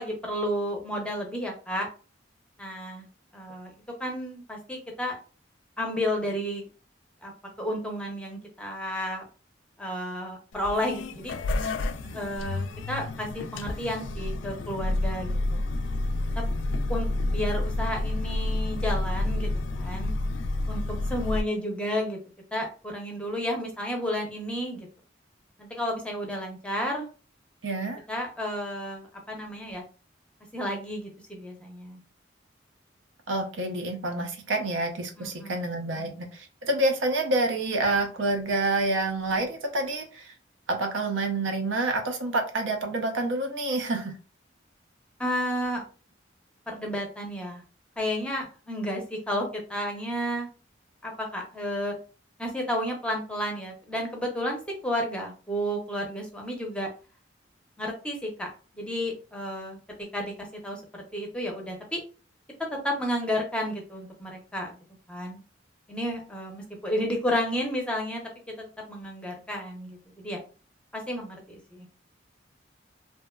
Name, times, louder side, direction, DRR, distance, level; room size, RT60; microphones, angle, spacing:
voice 1, 0.0-1.9 2.6-3.1 3.3-3.7 4.0-5.2 5.8-6.7 7.2-7.3 7.6-9.2 9.8-11.3 12.1-15.6 16.4-16.5 16.9-19.5 19.7-20.1 20.7-22.2 22.5-24.9 25.6-27.1 28.1-29.8 30.5-32.0 35.2-35.7 35.9-36.2 45.2-45.8 46.7-47.6 48.0-50.5 51.0-52.0 52.4-56.9 57.8-59.8 60.1-60.3 60.6-62.0 62.7-64.8 65.1-65.4 65.9-68.2 68.6-70.4 70.9-71.9, equal, 5° left, 1 dB, 0.5 m, -32 dB
sound 1, 10.5-21.4, left 2 dB, 75° left, 0.3 m, -29 dB
voice 2, 27.6-28.0 33.3-40.3 40.7-44.2, right 2 dB, 90° right, 4 dB, 0.6 m, -28 dB
2.7 x 2.2 x 2.2 m, 0.35 s
head